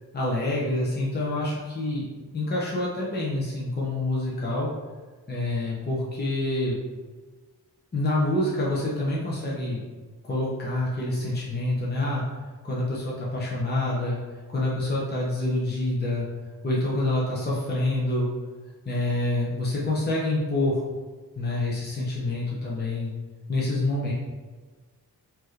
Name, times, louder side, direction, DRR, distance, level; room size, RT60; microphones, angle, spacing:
voice 1, 0.1-2.1 2.3-4.7 5.3-6.8 7.9-9.8 10.3-12.2 12.6-14.2 14.5-16.3 16.6-18.3 18.8-20.8 21.4-23.1 23.5-24.1, left 2 dB, 25° left, -6 dB, 0.8 m, -27 dB
4.3 x 2.9 x 3.2 m, 1.4 s
wide cardioid pair, 105°, 39 cm